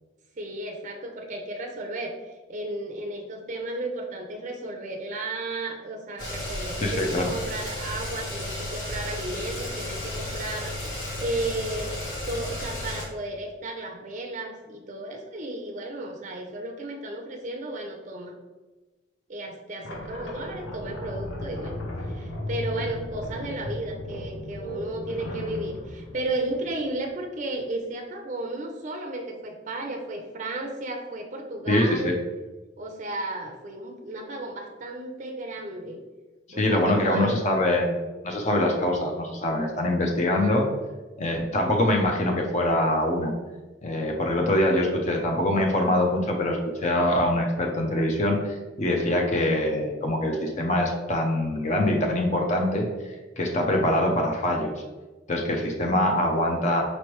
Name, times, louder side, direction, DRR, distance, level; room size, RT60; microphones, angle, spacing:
voice 1, 0.4-11.9 12.3-18.4 19.3-32.2 32.8-36.0 36.5-37.4 40.3-40.8, right 2 dB, 40° right, 2 dB, 0.5 m, -34 dB
sound 1, 6.2-13.1, left 1 dB, 65° left, 1.3 m, -33 dB
voice 2, 6.8-7.2 31.7-32.1 36.5-40.7 41.2-43.3 43.8-52.9 53.4-54.7 55.3-56.8, left 1 dB, 40° left, 1 dB, 0.5 m, -24 dB
sound 2, 19.8-27.2, left 1 dB, 90° left, 0.6 m, -36 dB
5.1 x 3.2 x 3.0 m, 1.2 s
head